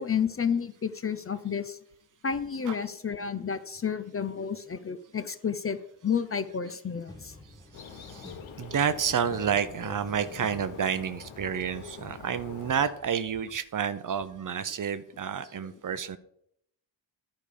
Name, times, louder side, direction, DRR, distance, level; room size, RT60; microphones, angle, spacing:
voice 1, 0.0-1.8 2.2-5.8 6.0-7.4, left 7 dB, 30° left, 12 dB, 0.5 m, -31 dB
sound 1, 7.1-11.6, left 1 dB, 10° left, 1.2 m, -49 dB
Bird, 7.7-12.9, left 7 dB, 85° left, 1.1 m, -45 dB
voice 2, 7.9-8.3 8.6-16.2, right 7 dB, 45° right, 13 dB, 0.6 m, -30 dB
11.0 x 5.1 x 5.0 m, 0.74 s
cardioid pair, 100°, 46 cm